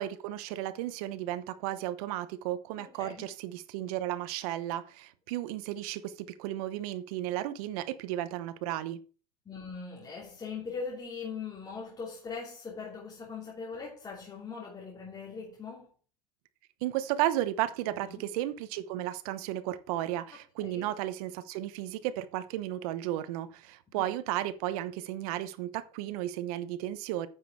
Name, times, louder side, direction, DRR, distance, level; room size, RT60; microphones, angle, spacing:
voice 1, 0.0-9.0 16.8-27.3, right 13 dB, 70° right, 1.0 m, -34 dB
voice 2, 2.8-3.3 9.4-15.9 18.0-18.3 20.6-20.9 23.9-24.1, left 5 dB, 20° left, 2.8 m, -41 dB
9.2 x 6.3 x 4.7 m
supercardioid pair, 130°, 20 cm